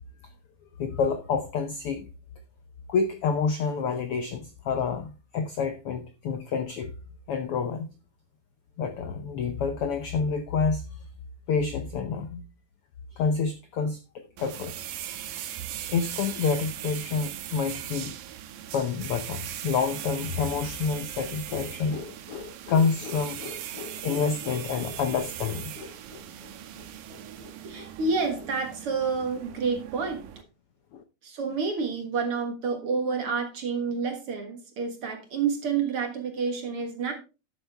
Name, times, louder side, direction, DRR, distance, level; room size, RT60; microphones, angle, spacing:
voice 1, 0.8-2.1 2.9-6.9 7.3-7.9 8.8-11.0 11.5-12.4 13.1-14.0 14.4-14.7 15.9-18.2 18.7-27.8 28.3-28.4 30.9-31.0, left 5 dB, 85° left, 1.2 m, -29 dB
sound 1, 14.4-30.4, right 11 dB, 85° right, 2.5 m, -39 dB
voice 2, 27.6-30.2 31.2-37.1, right 5 dB, 50° right, 2.0 m, -29 dB
12.0 x 7.2 x 3.4 m
omnidirectional pair, 3.8 m